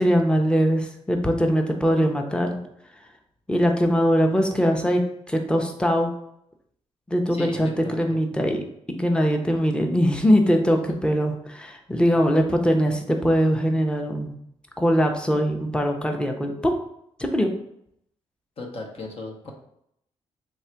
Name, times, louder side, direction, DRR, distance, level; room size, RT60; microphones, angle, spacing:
voice 1, 0.0-2.6 3.5-5.0 5.3-6.1 7.1-8.6 8.9-14.3 14.8-16.5 17.2-17.5, equal, 10° left, 3 dB, 0.6 m, -21 dB
voice 2, 7.3-8.2 18.6-19.5, left 2 dB, 60° left, 0 dB, 0.9 m, -36 dB
3.4 x 2.4 x 4.3 m, 0.75 s
cardioid pair, 70°, 12 cm